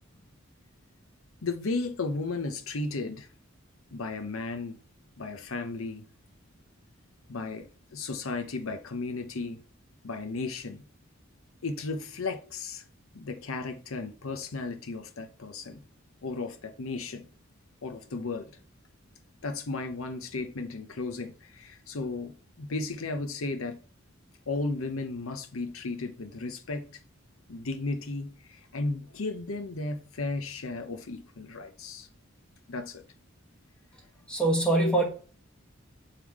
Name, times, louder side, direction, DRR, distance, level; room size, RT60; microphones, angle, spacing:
voice 1, 1.4-3.3 3.9-4.8 5.2-6.0 7.3-9.6 10.0-10.8 11.6-12.8 13.1-15.8 16.2-17.3 17.8-18.5 19.4-23.8 24.5-26.8 27.5-32.1 32.7-33.0, left 3 dB, 85° left, 0.8 m, -34 dB
voice 2, 34.3-35.0, right 2 dB, 5° left, 1.0 m, -23 dB
6.8 x 3.6 x 4.7 m
head